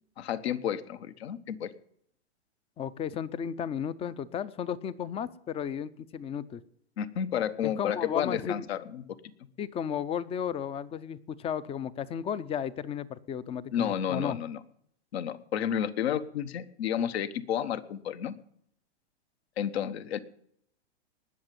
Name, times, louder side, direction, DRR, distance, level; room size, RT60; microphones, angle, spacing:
voice 1, 0.2-1.7 7.0-9.0 13.7-14.6 15.1-18.3 19.6-20.2, left 9 dB, 65° left, 12 dB, 1.3 m, -31 dB
voice 2, 2.8-6.6 7.6-8.7 9.6-14.4, left 8 dB, 15° left, 19 dB, 0.6 m, -34 dB
19.5 x 6.8 x 9.1 m, 0.70 s
hypercardioid pair, 120°, 34 cm